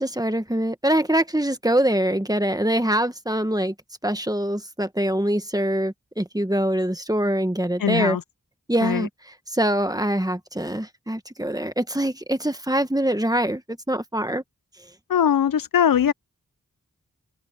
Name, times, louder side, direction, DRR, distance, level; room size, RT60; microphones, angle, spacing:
voice 1, 0.0-3.7 4.0-8.2 8.7-9.1 9.5-13.6 13.9-14.4, right 1 dB, 10° right, 1.4 m, -24 dB
voice 2, 7.8-8.2 8.8-9.1 15.1-16.1, left 8 dB, 85° left, 0.5 m, -20 dB
open air
wide cardioid pair, 45°, 33 cm